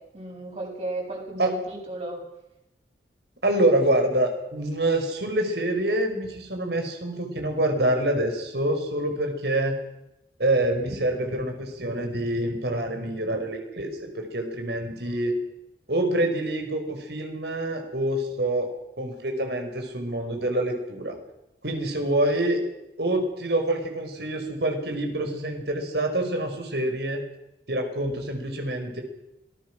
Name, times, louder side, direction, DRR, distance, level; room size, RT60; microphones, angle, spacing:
voice 1, 0.1-2.2, right 2 dB, 40° right, -1 dB, 8.0 m, -34 dB
voice 2, 3.4-9.8 10.4-15.3 15.9-18.7 19.0-21.2 21.6-22.6 23.0-27.2 27.7-29.0, right 1 dB, 65° right, 4 dB, 5.5 m, -26 dB
26.0 x 20.0 x 6.4 m, 0.89 s
head